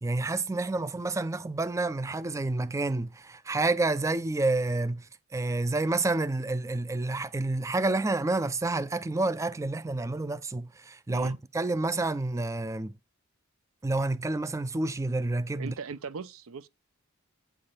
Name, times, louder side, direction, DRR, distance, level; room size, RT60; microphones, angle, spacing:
voice 1, 0.0-5.1 5.3-12.9 13.8-15.7, right 2 dB, 15° right, 0.3 m, -29 dB
voice 2, 15.6-16.7, right 5 dB, 70° right, 0.6 m, -39 dB
8.7 x 3.5 x 5.5 m
head